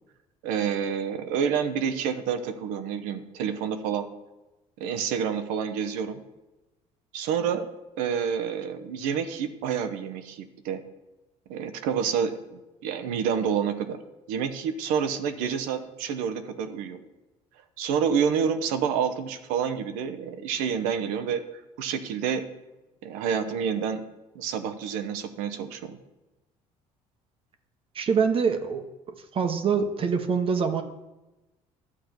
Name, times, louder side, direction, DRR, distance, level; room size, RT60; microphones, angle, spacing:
voice 1, 0.4-4.1 4.8-6.2 7.1-7.7 8.0-10.8 11.5-14.0 14.3-17.0 17.8-21.4 21.8-22.4 23.0-24.0 24.3-26.0, right 7 dB, 90° right, 8 dB, 0.9 m, -28 dB
voice 2, 27.9-28.8 29.3-30.8, right 6 dB, 45° right, 7 dB, 1.0 m, -24 dB
11.0 x 4.3 x 7.9 m, 1.0 s
cardioid pair, 105°, 13 cm